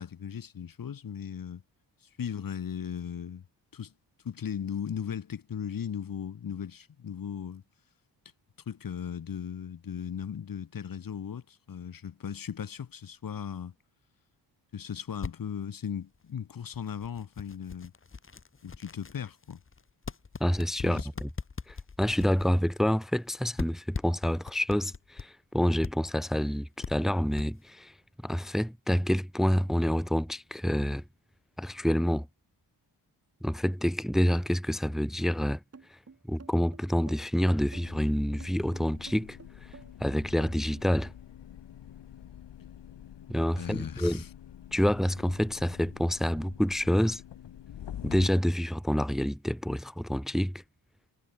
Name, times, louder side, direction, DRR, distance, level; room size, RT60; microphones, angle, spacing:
voice 1, 0.0-1.6 2.2-3.4 3.7-3.9 4.2-7.6 8.6-13.7 14.7-17.9 18.6-19.6 20.8-21.1 43.6-44.3, left 8 dB, 50° left, 1.8 m, -37 dB
sound 1, 15.1-15.3 16.0-16.2 16.7-23.3 23.6-25.3 25.7-25.9 26.3-26.4 26.8-26.9 27.3-27.7, left 5 dB, 30° left, 1.7 m, -40 dB
voice 2, 20.4-21.3 21.7-27.9 28.2-31.0 31.6-32.3 33.4-35.6 35.9-36.0 36.3-39.7 40.0-41.1 43.3-44.2 44.7-47.2 48.0-50.6, equal, ahead, 0.6 m, -28 dB
sound 2, 35.7-40.9, right 5 dB, 35° right, 3.7 m, -51 dB
sound 3, 37.7-48.3, left 10 dB, 75° left, 2.5 m, -47 dB
cardioid pair, 105°, 43 cm